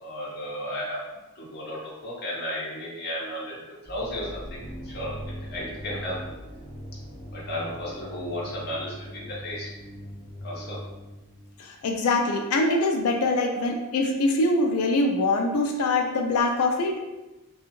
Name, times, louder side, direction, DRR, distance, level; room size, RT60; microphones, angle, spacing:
voice 1, 0.0-1.0 1.3-5.1 5.5-6.3 7.3-9.7 10.4-10.8, left 1 dB, 45° left, -5 dB, 0.7 m, -34 dB
sound 1, 3.8-11.7, equal, 20° right, 1.4 m, -40 dB
voice 2, 11.6-17.0, left 2 dB, 75° left, 2 dB, 0.3 m, -23 dB
2.7 x 2.3 x 2.9 m, 1.0 s
head